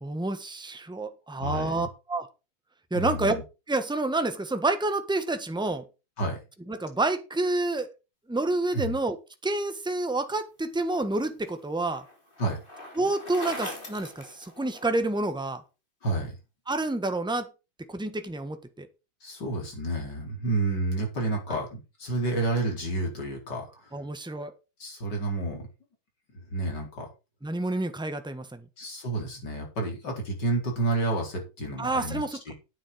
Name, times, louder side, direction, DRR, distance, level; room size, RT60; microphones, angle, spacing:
voice 1, 0.0-2.3 2.9-3.4 3.7-5.8 6.7-7.9 8.3-9.2 9.4-12.0 13.0-15.6 16.7-17.5 17.9-18.9 23.9-24.5 27.4-28.6 31.8-32.5, right 2 dB, 5° right, 8 dB, 1.0 m, -28 dB
voice 2, 1.4-1.9 2.9-3.4 6.2-6.4 8.7-9.0 12.4-12.6 16.0-16.4 19.2-23.9 24.8-25.7 26.5-27.1 28.8-32.5, right 2 dB, 55° left, 1 dB, 4.8 m, -30 dB
Bicycle, 10.8-15.2, left 1 dB, 25° left, 3.8 m, -41 dB
9.7 x 8.9 x 5.2 m, 0.29 s
omnidirectional pair, 2.2 m